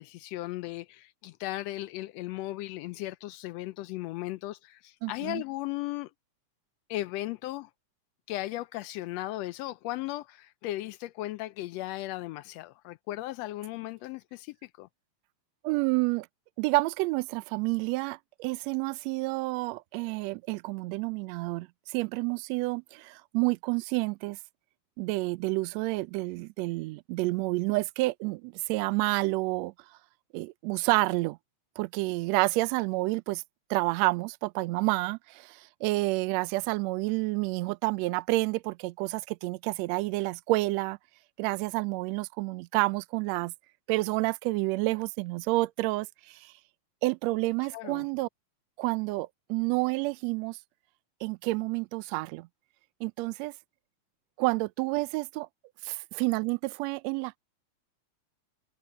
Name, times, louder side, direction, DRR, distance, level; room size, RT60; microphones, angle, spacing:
voice 1, 0.0-6.1 6.9-7.7 8.3-14.9 47.7-48.0, left 16 dB, 80° left, 1.5 m, -36 dB
voice 2, 5.0-5.4 15.6-16.3 16.6-24.4 25.0-29.7 30.3-31.4 31.8-33.4 33.7-41.0 41.4-43.5 43.9-46.5 47.0-48.3 48.8-50.6 51.2-52.5 53.0-53.5 54.4-55.5 55.8-57.4, right 22 dB, 80° right, 1.7 m, -29 dB
omnidirectional pair, 3.4 m